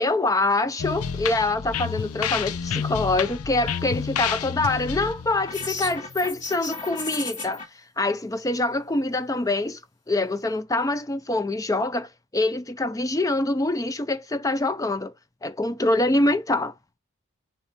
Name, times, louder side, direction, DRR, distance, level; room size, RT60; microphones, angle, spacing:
voice 1, 0.0-7.6 8.0-9.8 10.1-15.1 15.4-16.7, left 2 dB, 15° left, 0.4 m, -25 dB
sound 1, 0.8-6.4, left 7 dB, 80° left, 0.6 m, -30 dB
sound 2, 5.5-7.6, left 4 dB, 30° left, 2.5 m, -34 dB
6.9 x 4.0 x 4.2 m
head